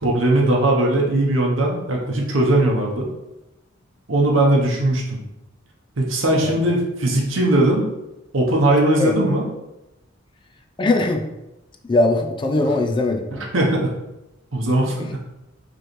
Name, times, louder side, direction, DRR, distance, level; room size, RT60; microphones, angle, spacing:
voice 1, 0.0-3.1 4.1-5.2 6.0-7.9 8.3-9.5 12.6-12.7 13.3-13.9 14.5-15.0, right 1 dB, 75° right, -2 dB, 0.8 m, -19 dB
voice 2, 10.8-11.3 11.8-13.4 15.0-15.1, left 2 dB, 25° left, 4 dB, 0.4 m, -21 dB
5.1 x 3.1 x 3.1 m, 0.94 s
head